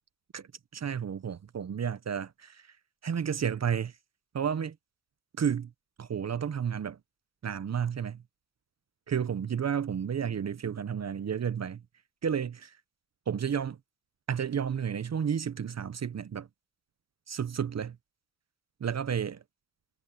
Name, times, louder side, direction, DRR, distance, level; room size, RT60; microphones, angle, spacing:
voice 1, 0.3-2.8 3.0-4.0 4.3-4.8 5.4-5.7 6.0-7.0 7.4-8.2 9.1-11.8 12.2-12.8 13.3-13.8 14.3-16.5 17.3-18.0 18.8-19.4, right 8 dB, 50° right, 0.8 m, -31 dB
cardioid pair, 65°, 33 cm